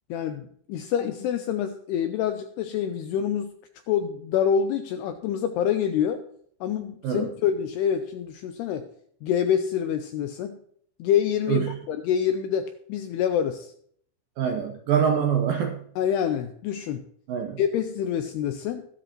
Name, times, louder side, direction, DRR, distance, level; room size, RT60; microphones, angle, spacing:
voice 1, 0.1-3.5 3.9-6.2 6.6-8.9 9.2-10.6 11.0-13.7 16.0-17.0 17.6-18.9, left 8 dB, 85° left, 8 dB, 2.4 m, -26 dB
voice 2, 14.4-15.8 17.3-17.6, right 8 dB, 80° right, 3 dB, 2.1 m, -24 dB
21.5 x 7.7 x 3.0 m, 0.63 s
omnidirectional pair, 5.3 m